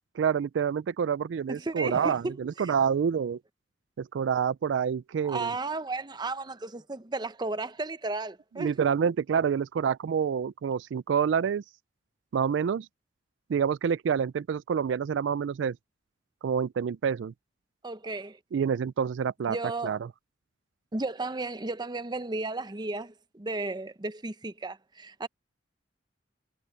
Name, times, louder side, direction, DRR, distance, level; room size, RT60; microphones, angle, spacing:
voice 1, 0.2-3.4 4.0-5.5 8.6-11.6 12.3-12.9 13.5-15.8 16.4-17.3 18.5-19.6 19.8-20.0, right 7 dB, 80° right, 0.3 m, -27 dB
voice 2, 1.5-2.7 5.2-8.7 17.8-18.4 19.5-20.0 20.9-25.3, right 3 dB, 25° right, 0.8 m, -34 dB
head